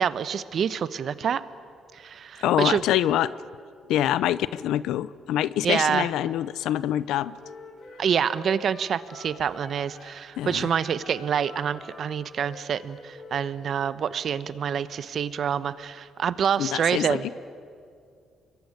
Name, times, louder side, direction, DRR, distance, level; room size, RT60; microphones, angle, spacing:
voice 1, 0.0-1.4 1.9-2.8 5.6-6.1 8.0-17.3, right 7 dB, 60° right, 15 dB, 1.0 m, -27 dB
voice 2, 2.4-3.3 3.9-7.4 10.4-10.7 16.6-17.3, left 12 dB, 85° left, 17 dB, 0.6 m, -25 dB
Wind instrument woodwind instrument, 7.1-10.2 10.5-14.0, left 3 dB, 45° left, 6.8 m, -46 dB
26.5 x 22.0 x 9.8 m, 2.3 s
cardioid pair, 90°, 0 cm